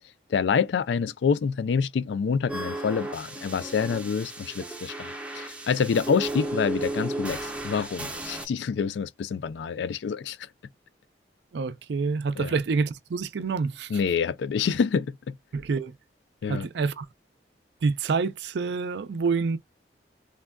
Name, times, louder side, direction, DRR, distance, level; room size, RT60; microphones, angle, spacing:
voice 1, 0.3-10.4 12.4-12.6 13.9-15.3 16.4-16.7, left 6 dB, 75° left, 0.3 m, -27 dB
sound 1, 2.5-8.5, right 1 dB, 5° right, 0.5 m, -34 dB
voice 2, 11.5-13.9 15.5-15.9 16.5-17.1 17.8-19.6, right 4 dB, 65° right, 0.4 m, -27 dB
3.4 x 2.2 x 2.3 m
head